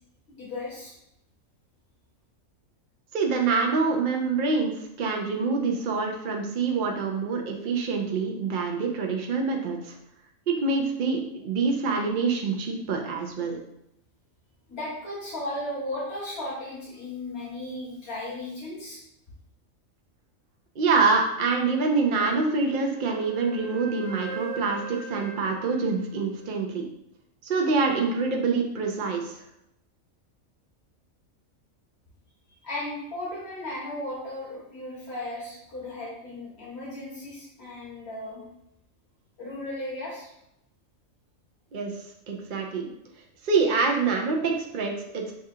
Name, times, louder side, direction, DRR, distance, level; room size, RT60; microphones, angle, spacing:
voice 1, 0.3-0.9 14.7-19.0 32.6-38.4 39.4-40.3, left 1 dB, 45° left, -7 dB, 2.0 m, -35 dB
voice 2, 3.1-9.9 10.5-13.6 20.8-26.8 27.4-29.3 41.7-41.9 42.3-42.9 43.4-45.2, right 4 dB, 65° right, 1 dB, 0.5 m, -26 dB
Wind instrument woodwind instrument, 22.6-26.8, right 4 dB, 25° right, 0.9 m, -41 dB
6.6 x 2.4 x 2.7 m, 0.79 s
omnidirectional pair, 1.5 m